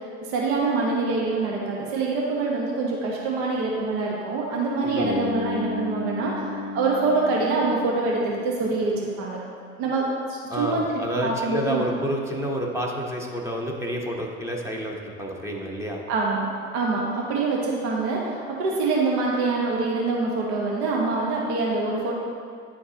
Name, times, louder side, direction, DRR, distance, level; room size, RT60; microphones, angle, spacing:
voice 1, 0.3-9.4 9.8-10.8 11.2-11.8 16.1-22.2, right 3 dB, 65° right, -3 dB, 1.2 m, -25 dB
Bass guitar, 5.0-9.1, left 3 dB, 60° left, 0.7 m, -34 dB
voice 2, 10.5-16.0, equal, 5° right, -1 dB, 0.9 m, -29 dB
9.6 x 4.5 x 2.8 m, 2.2 s
hypercardioid pair, 80°, 38 cm